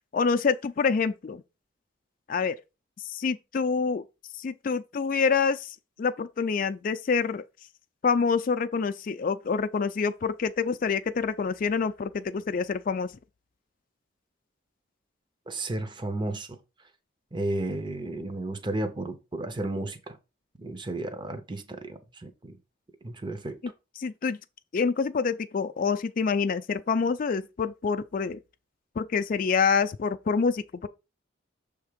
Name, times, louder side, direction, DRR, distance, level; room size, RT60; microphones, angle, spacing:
voice 1, 0.1-1.4 2.3-2.5 3.1-4.0 4.4-7.4 8.0-13.1 24.0-24.4 24.7-28.4 29.0-30.9, left 5 dB, 45° left, 0.4 m, -26 dB
voice 2, 15.5-16.6 17.3-20.2 20.6-22.6 23.0-23.6, right 2 dB, 25° right, 0.7 m, -33 dB
6.5 x 3.5 x 5.0 m
head